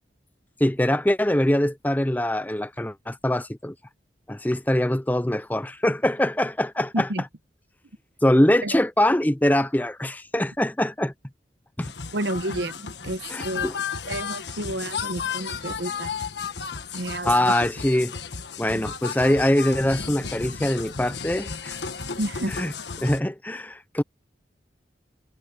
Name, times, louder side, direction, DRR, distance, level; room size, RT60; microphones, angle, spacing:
voice 1, 0.6-3.7 4.3-7.1 8.2-11.1 11.8-11.9 13.3-13.8 17.2-18.2 18.6-21.8 22.5-22.7 23.0-24.0, left 1 dB, 10° left, 0.6 m, -23 dB
sound 1, 11.8-23.2, left 6 dB, 80° left, 1.4 m, -34 dB
voice 2, 12.1-13.7 14.1-16.2 16.9-17.5 22.2-22.6, right 1 dB, 80° right, 1.1 m, -30 dB
head